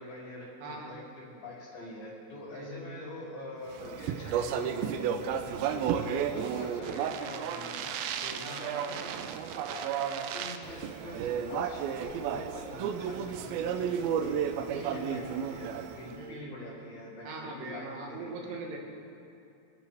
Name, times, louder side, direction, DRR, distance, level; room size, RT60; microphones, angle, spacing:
voice 1, 0.0-9.2 9.7-18.6, left 1 dB, 90° left, -11 dB, 4.9 m, -45 dB
voice 2, 0.6-1.0 2.5-2.8 8.4-8.8 14.7-15.2 16.1-16.6 17.2-18.8, right 2 dB, 70° right, 1 dB, 3.0 m, -41 dB
Speech, 3.8-16.1, right 8 dB, 85° right, 2.5 m, -33 dB
25.0 x 9.7 x 3.5 m, 2.5 s
omnidirectional pair, 4.2 m